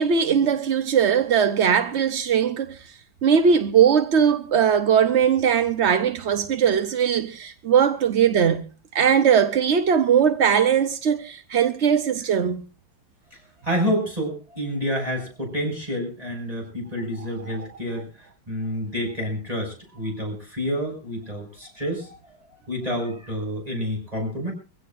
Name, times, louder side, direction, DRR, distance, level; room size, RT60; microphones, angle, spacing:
voice 1, 0.0-2.9 3.2-12.6 17.5-17.7, right 7 dB, 60° right, 0.7 m, -20 dB
voice 2, 13.6-18.1 18.5-22.2 22.7-24.5, equal, 15° right, 6.5 m, -28 dB
24.0 x 16.0 x 2.6 m
omnidirectional pair, 2.2 m